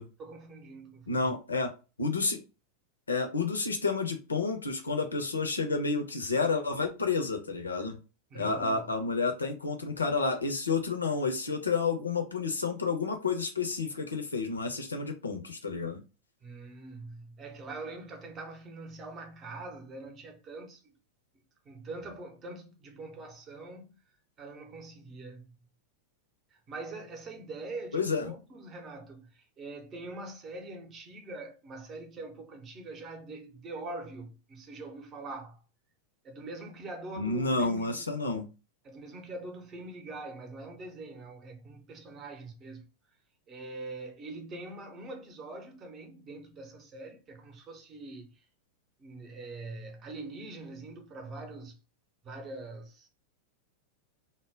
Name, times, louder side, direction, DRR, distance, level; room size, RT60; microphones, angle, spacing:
voice 1, 0.2-1.3 8.3-8.9 16.4-20.9 21.3-24.0 24.4-25.5 26.5-35.6 36.2-38.1 38.8-42.9 43.5-48.4 49.0-51.8 52.2-53.1, right 2 dB, 25° right, 0.7 m, -43 dB
voice 2, 1.1-1.7 2.0-2.4 3.1-8.0 8.3-16.0 27.9-28.3 37.2-38.5, left 4 dB, 75° left, 0.6 m, -30 dB
2.1 x 2.1 x 3.5 m
figure-of-eight pair, 90°, 0 cm